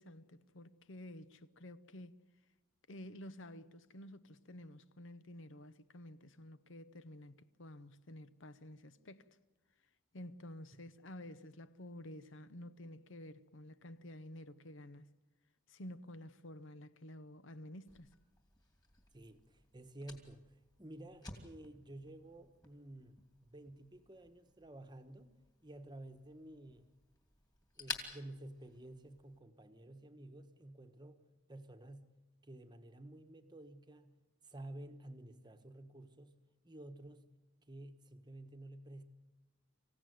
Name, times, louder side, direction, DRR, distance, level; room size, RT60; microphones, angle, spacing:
voice 1, 0.0-2.2 2.9-9.3 10.1-15.1 15.7-18.1, left 1 dB, 55° left, 0.8 m, -51 dB
Fire, 17.9-29.4, left 4 dB, 20° left, 2.7 m, -53 dB
voice 2, 19.1-23.2 23.5-26.8 27.8-31.2 31.5-32.1 32.4-34.2 34.4-36.4 36.6-37.3 37.7-39.0, right 1 dB, 20° right, 1.2 m, -52 dB
25.5 x 16.5 x 9.4 m
head